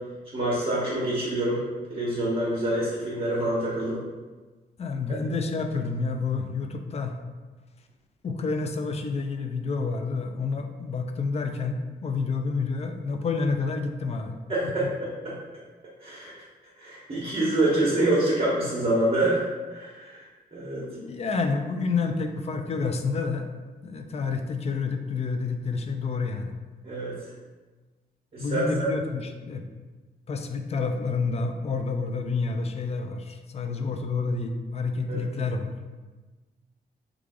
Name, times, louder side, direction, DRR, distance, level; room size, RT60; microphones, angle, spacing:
voice 1, 0.3-1.6 1.9-4.0 14.5-15.3 16.0-16.3 16.8-19.4 19.7-20.2 20.5-20.8 26.8-27.2 28.3-28.9 35.1-35.3, right 1 dB, 35° right, -8 dB, 1.0 m, -26 dB
voice 2, 4.8-7.1 8.2-14.3 14.8-14.9 20.8-23.5 23.8-26.5 28.4-29.6 30.3-35.7, left 4 dB, 40° left, 6 dB, 0.4 m, -29 dB
3.2 x 2.4 x 3.6 m, 1.3 s
cardioid pair, 100°, 17 cm